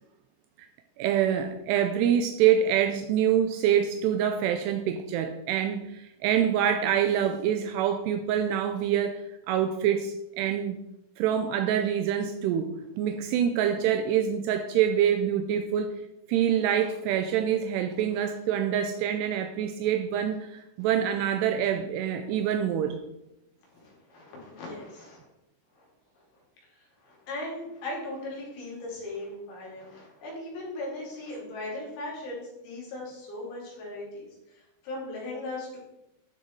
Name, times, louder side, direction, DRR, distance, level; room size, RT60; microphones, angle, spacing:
voice 1, 1.0-10.8 11.2-15.9 16.3-23.0, right 9 dB, 85° right, 7 dB, 2.4 m, -26 dB
voice 2, 20.8-21.3 21.5-21.7 23.7-25.2 25.8-25.9 27.0-34.3 34.5-35.8, left 2 dB, 80° left, -4 dB, 5.9 m, -38 dB
12.5 x 6.6 x 4.6 m, 0.90 s
omnidirectional pair, 5.4 m